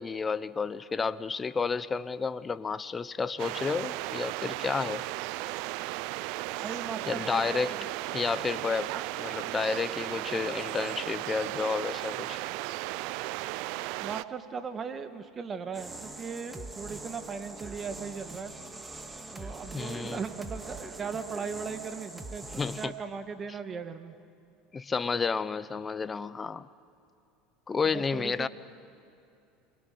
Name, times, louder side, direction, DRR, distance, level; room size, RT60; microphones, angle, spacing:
voice 1, 0.0-5.0 7.1-7.7 8.1-8.9 9.2-12.4 19.7-20.2 22.6-22.9 24.7-26.7 27.7-28.5, left 5 dB, 25° left, 15 dB, 0.9 m, -31 dB
sound 1, 3.4-14.2, right 18 dB, 65° right, 0.6 m, -35 dB
voice 2, 6.6-7.8 8.9-9.1 14.0-18.5 19.3-24.2 27.9-28.5, right 5 dB, 30° right, 8 dB, 2.0 m, -38 dB
sound 2, 15.7-22.9, right 2 dB, 15° right, 2.2 m, -43 dB
28.5 x 22.5 x 7.9 m, 2.7 s
hypercardioid pair, 85°, 0 cm